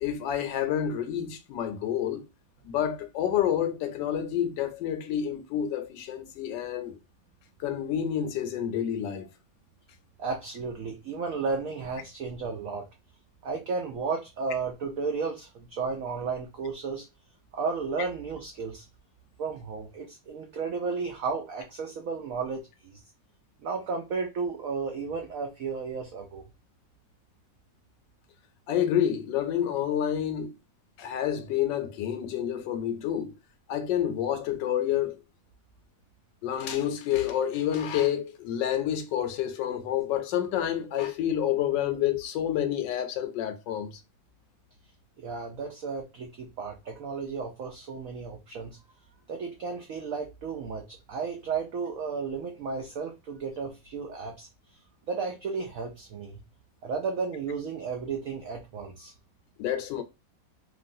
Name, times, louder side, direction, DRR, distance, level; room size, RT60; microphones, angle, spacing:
voice 1, 0.0-2.3 2.6-7.0 7.6-9.3 28.7-30.5 31.0-33.3 33.7-35.2 36.4-44.0 59.6-60.0, left 10 dB, 75° left, 1.2 m, -28 dB
voice 2, 10.2-12.8 13.4-17.0 17.5-18.8 19.4-23.0 23.6-26.4 45.2-48.8 49.3-54.5 55.1-56.4 56.8-59.1, right 5 dB, 85° right, 0.7 m, -33 dB
3.0 x 2.6 x 2.5 m
omnidirectional pair, 2.1 m